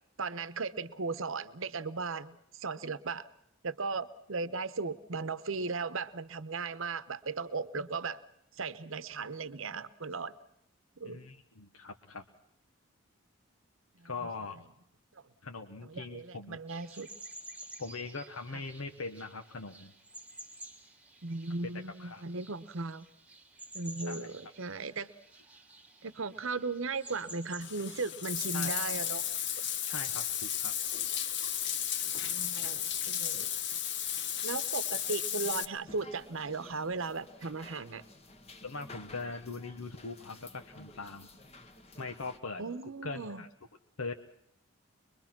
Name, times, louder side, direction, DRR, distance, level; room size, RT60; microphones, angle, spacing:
voice 1, 0.2-3.3 3.6-8.2 8.6-10.3 11.0-11.2 14.0-14.1 15.1-15.2 15.8-17.1 21.2-23.1 23.7-25.1 26.0-29.3 32.3-33.5 34.4-38.0 42.6-43.4, right 4 dB, 70° right, 14 dB, 0.9 m, -37 dB
voice 2, 11.0-12.2 14.0-14.6 15.4-16.6 17.8-19.9 22.0-22.2 24.1-24.2 28.5-28.7 29.8-30.7 38.6-41.3 42.0-42.6 43.0-43.5 44.0-44.1, left 3 dB, 80° left, 5 dB, 1.2 m, -41 dB
sound 1, 16.7-28.1, right 2 dB, 5° right, 1.7 m, -51 dB
Bathtub (filling or washing), 27.6-35.6, left 10 dB, 55° left, 1.0 m, -34 dB
sound 2, 35.9-42.4, left 2 dB, 30° left, 1.4 m, -53 dB
23.5 x 22.5 x 6.0 m, 0.74 s
head